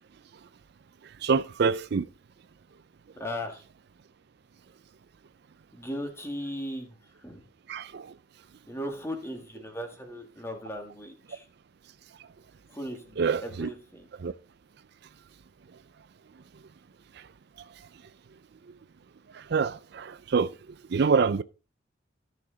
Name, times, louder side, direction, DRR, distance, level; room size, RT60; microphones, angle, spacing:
voice 1, 1.2-2.1 7.7-8.1 13.2-13.7 14.2-14.3 19.3-20.5 20.9-21.4, right 5 dB, 55° right, 0.4 m, -26 dB
voice 2, 3.1-3.6 5.7-7.4 8.7-11.5 12.7-14.1, equal, 15° left, 1.9 m, -37 dB
13.5 x 6.2 x 3.8 m
head